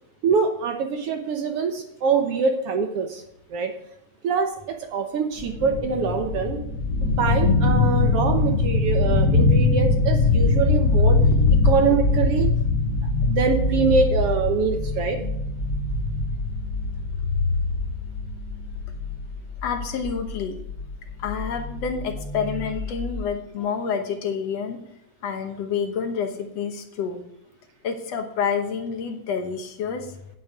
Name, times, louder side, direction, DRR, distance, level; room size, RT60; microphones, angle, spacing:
voice 1, 0.2-3.2 3.5-3.7 4.2-6.6 7.0-11.2 11.6-12.5 13.2-15.2, right 5 dB, 65° right, 5 dB, 1.7 m, -24 dB
sound 1, 5.4-23.2, left 3 dB, 45° left, 1.8 m, -23 dB
voice 2, 19.6-20.6 21.2-24.8 25.2-27.2 27.8-30.2, left 6 dB, 65° left, 5 dB, 2.1 m, -28 dB
9.1 x 8.8 x 4.8 m, 0.77 s
omnidirectional pair, 3.3 m